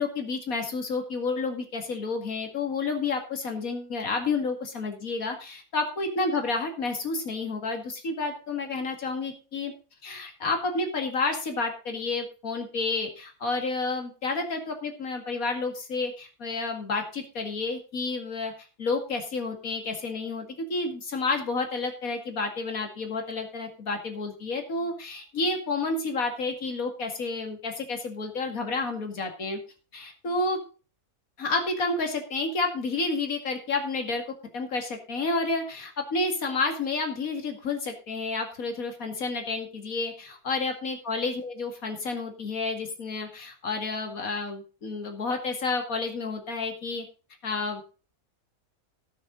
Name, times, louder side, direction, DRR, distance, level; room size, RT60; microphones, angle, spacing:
voice 1, 0.0-9.7 10.0-18.5 18.8-29.6 29.9-30.6 31.4-47.0 47.4-47.8, left 3 dB, 70° left, 4 dB, 2.6 m, -30 dB
18.0 x 6.5 x 4.0 m, 0.34 s
omnidirectional pair, 1.5 m